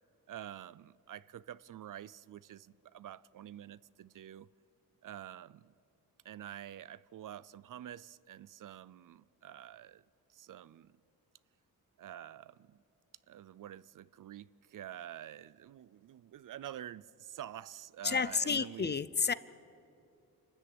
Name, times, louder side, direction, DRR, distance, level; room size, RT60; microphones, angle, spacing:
voice 1, 0.3-4.5 5.0-5.7 6.2-10.0 10.3-11.0 12.0-12.8 13.3-19.0, right 11 dB, 60° right, 0.5 m, -48 dB
voice 2, 18.0-19.3, left 5 dB, 30° left, 0.5 m, -31 dB
27.5 x 13.0 x 9.7 m
wide cardioid pair, 145°, 37 cm